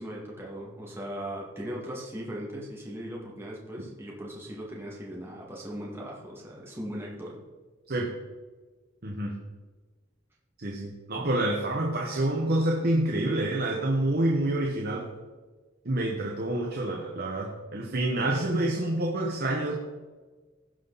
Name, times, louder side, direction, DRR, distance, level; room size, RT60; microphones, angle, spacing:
voice 1, 0.0-7.4, equal, 10° right, -4 dB, 2.0 m, -38 dB
voice 2, 9.0-9.3 10.6-15.1 15.8-19.7, right 1 dB, 50° right, 1 dB, 1.2 m, -27 dB
16.5 x 5.6 x 4.1 m, 1.3 s
head